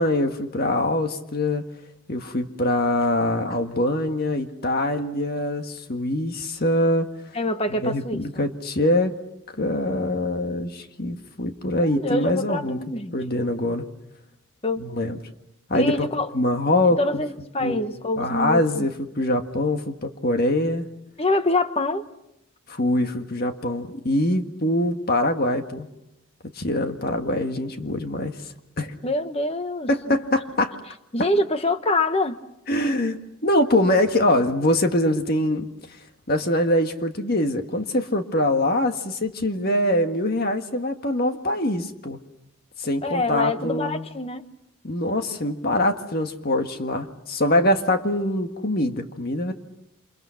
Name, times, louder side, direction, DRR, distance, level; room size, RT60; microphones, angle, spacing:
voice 1, 0.0-1.7 2.1-7.1 7.7-9.2 9.6-12.8 13.1-13.9 14.8-15.2 15.7-16.1 16.3-17.2 17.6-17.9 18.2-20.9 22.7-25.9 26.6-28.4 28.8-28.9 29.9-30.8 32.7-35.7 36.3-42.2 42.8-44.1 44.8-49.5, left 1 dB, 45° left, 6 dB, 1.7 m, -23 dB
voice 2, 7.3-8.4 11.7-13.1 14.6-14.9 15.7-16.3 17.0-18.9 21.2-22.0 29.0-30.2 31.1-32.4 43.0-44.4, left 2 dB, 25° left, 9 dB, 1.2 m, -25 dB
29.0 x 28.0 x 5.8 m, 0.85 s
head